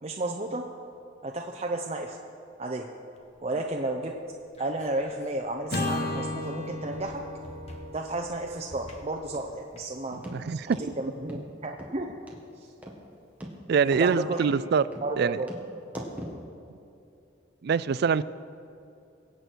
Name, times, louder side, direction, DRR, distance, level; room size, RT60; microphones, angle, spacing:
voice 1, 0.0-0.7 1.2-2.2 2.6-2.9 3.4-4.2 4.6-7.2 7.9-10.2 10.8-12.2 12.6-12.7 13.8-14.6 15.0-15.5, right 2 dB, 35° right, 1 dB, 0.8 m, -32 dB
sound 1, 3.1-10.3, left 1 dB, 35° left, 1.6 m, -51 dB
Acoustic guitar / Strum, 5.7-10.1, left 2 dB, 55° left, 1.8 m, -35 dB
voice 2, 10.1-10.8 13.7-14.9 15.2-15.4 17.6-18.2, right 6 dB, 60° right, 17 dB, 0.4 m, -24 dB
sound 2, 10.2-10.4 10.7-10.9 11.3-11.4 11.8-11.9 12.3-12.4 12.8-13.0 13.4-13.5 13.9-14.1 14.4-14.6 14.9-15.1 15.5-15.6 15.9-16.4, equal, 10° right, 1.8 m, -39 dB
23.5 x 8.3 x 4.6 m, 2.7 s
head